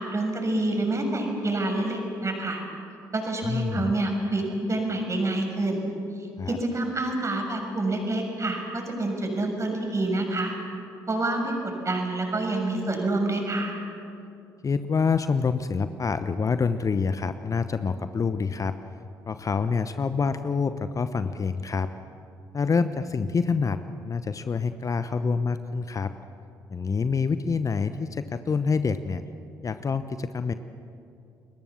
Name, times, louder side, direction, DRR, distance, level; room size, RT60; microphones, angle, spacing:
voice 1, 0.0-2.6 3.1-4.4 4.7-5.8 6.5-10.5 11.1-11.5 11.8-13.7, right 2 dB, 30° right, 3 dB, 6.8 m, -27 dB
voice 2, 3.4-3.9 6.4-6.6 14.6-18.8 19.3-21.9 22.5-23.8 24.0-26.1 26.7-29.2 29.6-30.5, left 5 dB, 35° left, 11 dB, 1.0 m, -26 dB
30.0 x 22.0 x 7.3 m, 2.6 s
figure-of-eight pair, 45°, 10 cm